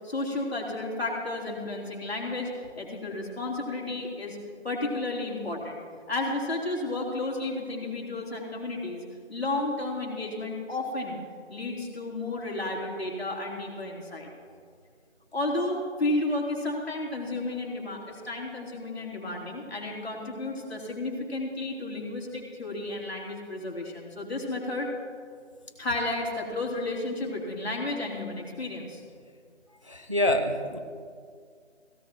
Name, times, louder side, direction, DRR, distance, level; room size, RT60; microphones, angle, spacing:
voice 1, 0.0-2.5 2.8-4.4 4.6-5.8 6.1-9.0 9.3-11.2 11.5-14.3 15.3-24.9 25.8-29.0, left 2 dB, 55° left, -1 dB, 3.5 m, -32 dB
voice 2, 29.8-30.8, left 1 dB, 25° right, 5 dB, 0.6 m, -26 dB
17.5 x 17.0 x 3.0 m, 2.1 s
figure-of-eight pair, 165°, 36 cm